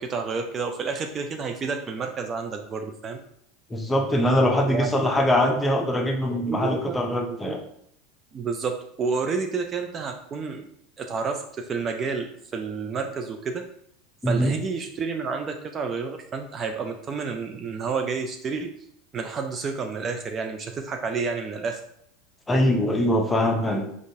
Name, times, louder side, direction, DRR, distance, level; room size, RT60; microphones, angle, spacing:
voice 1, 0.0-3.2 4.7-5.9 6.3-7.0 7.3-7.6 8.3-10.6 11.0-13.6 14.3-18.7 19.1-21.8, right 5 dB, 30° right, 4 dB, 0.3 m, -30 dB
voice 2, 3.7-7.6 14.2-14.5 22.5-23.9, left 1 dB, 10° left, 2 dB, 0.6 m, -22 dB
3.7 x 2.4 x 2.6 m, 0.72 s
hypercardioid pair, 95°, 0 cm